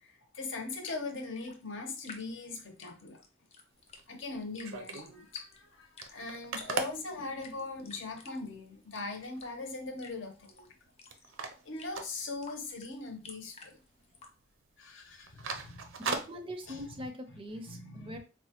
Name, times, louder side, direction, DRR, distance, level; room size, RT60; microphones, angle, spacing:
voice 1, 0.0-3.2 4.1-10.7 11.6-13.8 14.8-15.9 16.7-16.8 17.7-18.2, left 3 dB, 65° left, 3 dB, 0.8 m, -41 dB
sound 1, 0.6-14.3, left 4 dB, 30° left, 0.5 m, -54 dB
sound 2, 3.8-5.2 5.6-5.7 5.8-8.0 8.5-8.6 8.9-9.4 9.8-10.8 11.1-12.9 13.2-13.3 13.7-14.2 14.4-14.6 15.0-17.0, right 4 dB, 75° right, 0.5 m, -39 dB
voice 2, 16.0-18.2, equal, 25° right, 6 dB, 0.4 m, -42 dB
4.1 x 2.2 x 2.8 m, 0.32 s
head